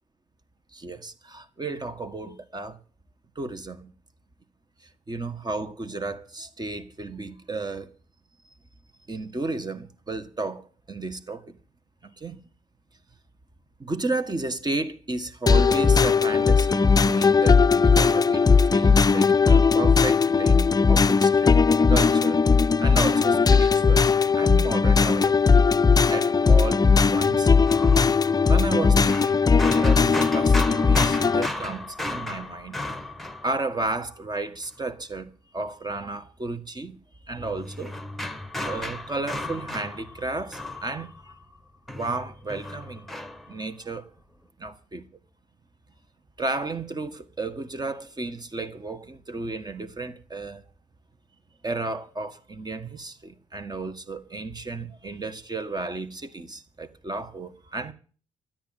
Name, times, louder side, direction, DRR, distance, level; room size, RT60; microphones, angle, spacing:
voice 1, 0.7-2.8 3.3-3.9 5.1-7.9 9.1-11.5 12.2-12.4 13.8-21.5 21.9-22.4 22.8-24.1 24.3-25.6 26.1-26.8 27.1-27.7 28.5-32.8 33.4-37.0 37.3-38.0 38.6-41.3 41.9-43.0 43.5-44.1 44.6-45.0 46.4-50.6 51.6-57.9, right 3 dB, 25° right, 1.7 m, -33 dB
sound 1, 15.5-31.5, left 5 dB, 25° left, 0.6 m, -18 dB
sound 2, 26.9-34.1 37.4-41.6 41.9-43.6, left 2 dB, ahead, 1.5 m, -35 dB
13.0 x 9.0 x 9.1 m
hypercardioid pair, 50°, 16 cm